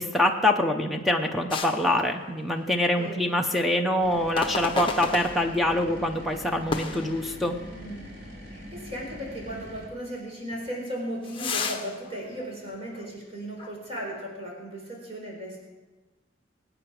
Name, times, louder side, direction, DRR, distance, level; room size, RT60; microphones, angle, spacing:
voice 1, 0.0-7.5, left 1 dB, ahead, 4 dB, 0.8 m, -25 dB
sound 1, 1.5-2.7 3.0-3.2 4.4-5.9 6.7-7.9 8.3-8.4 9.1-9.2 10.5-13.2 13.6-13.8, left 4 dB, 25° left, 1.1 m, -34 dB
sound 2, 4.0-9.9, equal, 60° right, 3.1 m, -43 dB
voice 2, 7.7-8.1 8.5-15.6, right 1 dB, 30° right, -2 dB, 4.2 m, -36 dB
23.5 x 9.1 x 4.9 m, 1.2 s
head